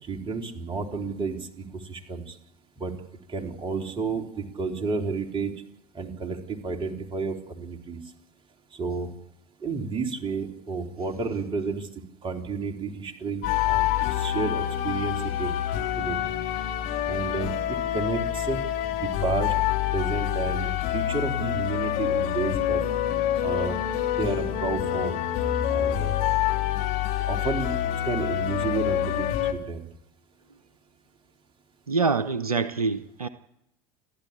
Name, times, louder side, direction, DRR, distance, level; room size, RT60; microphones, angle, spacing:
voice 1, 0.0-2.4 2.8-2.9 3.3-5.6 5.9-8.0 8.7-9.1 9.6-11.9 12.2-15.6 16.0-16.2 17.1-18.6 18.9-19.6 19.9-22.8 23.4-23.8 24.1-25.2 25.7-26.1 27.3-29.9, right 4 dB, 25° right, 2 dB, 3.6 m, -31 dB
sound 1, 13.4-29.5, left 11 dB, 50° left, 2.9 m, -27 dB
voice 2, 31.9-33.3, right 4 dB, 90° right, 11 dB, 0.9 m, -25 dB
29.5 x 11.5 x 8.6 m, 0.85 s
figure-of-eight pair, 75°, 18 cm